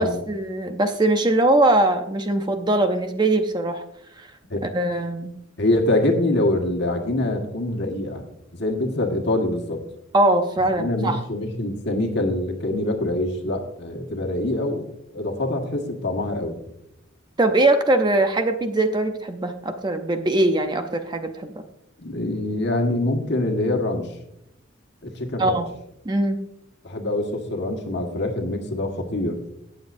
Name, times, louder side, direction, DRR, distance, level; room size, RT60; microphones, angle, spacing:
voice 1, 0.0-3.8 4.2-4.3 4.7-5.3 10.1-11.2 17.4-21.5 25.4-25.7 26.1-26.4, right 2 dB, 20° right, 7 dB, 0.6 m, -21 dB
voice 2, 5.6-8.3 8.5-9.8 10.8-14.8 15.1-16.6 22.0-24.1 25.0-25.6 26.8-29.4, left 1 dB, 55° left, 3 dB, 1.6 m, -24 dB
17.5 x 7.4 x 2.6 m, 0.80 s
head